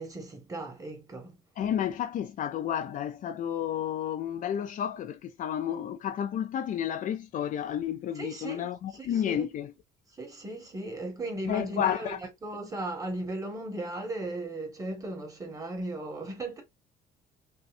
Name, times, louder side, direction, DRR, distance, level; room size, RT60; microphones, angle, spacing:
voice 1, 0.0-1.3 8.1-8.7 8.9-9.5 10.1-12.1 12.4-16.6, right 2 dB, 20° right, 1.5 m, -36 dB
voice 2, 1.6-9.7 11.5-12.2, left 10 dB, 50° left, 0.4 m, -31 dB
5.3 x 2.1 x 2.5 m
cardioid pair, 110°, 17 cm